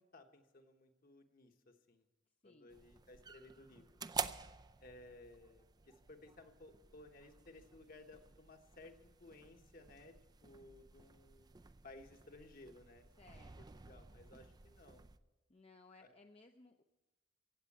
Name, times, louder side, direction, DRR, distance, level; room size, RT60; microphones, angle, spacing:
voice 1, 0.0-2.0 2.4-4.0 4.8-10.2 10.4-11.6 11.8-13.0 13.3-15.0 16.0-16.1, left 2 dB, 50° left, 5 dB, 1.2 m, -59 dB
sound 1, 2.7-15.2, right 6 dB, 20° right, 0.4 m, -50 dB
voice 2, 13.2-13.8 15.5-16.8, left 3 dB, 30° left, 4 dB, 0.6 m, -62 dB
16.0 x 8.2 x 8.5 m, 1.1 s
head